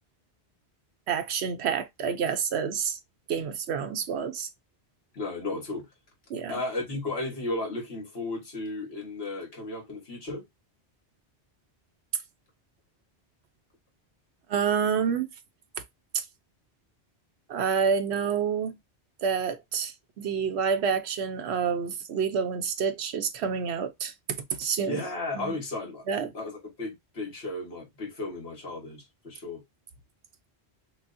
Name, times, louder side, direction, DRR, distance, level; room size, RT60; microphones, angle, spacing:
voice 1, 1.1-3.0 3.3-4.5 6.3-6.6 14.5-15.3 16.1-16.2 17.5-18.8 19.2-25.0 25.3-25.5 26.1-26.3, right 6 dB, 75° right, 0.9 m, -28 dB
voice 2, 5.1-5.9 6.5-10.4 24.8-29.6, left 2 dB, 65° left, 1.6 m, -34 dB
6.0 x 2.1 x 2.5 m
omnidirectional pair, 1.1 m